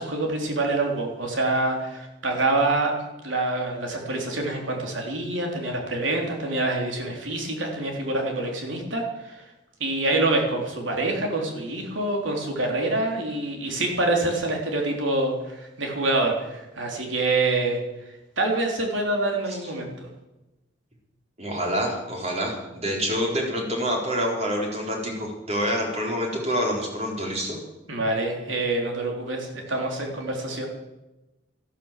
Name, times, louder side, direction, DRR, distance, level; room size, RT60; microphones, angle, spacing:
voice 1, 0.0-3.0 3.2-9.4 9.8-17.8 18.4-20.1 27.9-30.7, right 2 dB, 85° right, 1 dB, 3.6 m, -26 dB
voice 2, 21.4-27.6, equal, 35° right, 0 dB, 4.0 m, -27 dB
13.0 x 12.5 x 7.6 m, 1.0 s
head